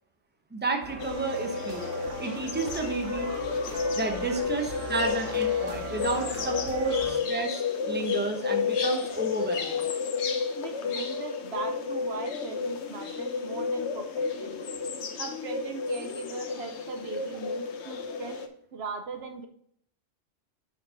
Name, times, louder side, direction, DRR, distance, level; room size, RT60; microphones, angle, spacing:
voice 1, 0.5-1.8 2.2-3.3 4.0-9.9, right 3 dB, 10° right, 3 dB, 0.9 m, -31 dB
sound 1, 0.8-7.2, right 5 dB, 90° right, 1.2 m, -40 dB
sound 2, 1.0-18.5, left 6 dB, 70° left, 1.1 m, -31 dB
voice 2, 10.6-14.6 15.2-18.4 18.7-19.5, right 4 dB, 65° right, 6 dB, 0.9 m, -39 dB
6.0 x 5.4 x 5.1 m, 0.67 s
omnidirectional pair, 1.2 m